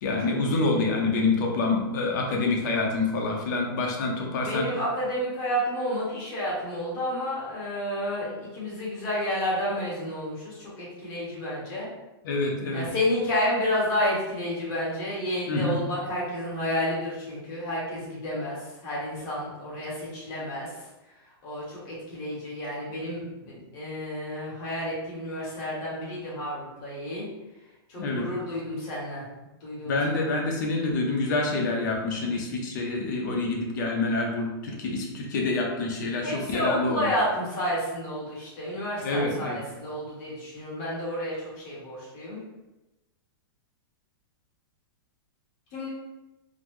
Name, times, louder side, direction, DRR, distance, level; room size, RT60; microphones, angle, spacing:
voice 1, 0.0-4.7 12.2-12.8 15.5-15.8 28.0-28.2 29.8-37.0 39.0-39.6, left 3 dB, 50° left, 0 dB, 0.7 m, -27 dB
voice 2, 4.4-11.9 12.7-20.7 21.4-27.3 27.9-29.2 29.6-30.2 36.2-42.4 45.7-45.9, left 1 dB, 30° left, -6 dB, 1.2 m, -30 dB
4.0 x 2.0 x 3.1 m, 1.0 s
supercardioid pair, 165°, 13 cm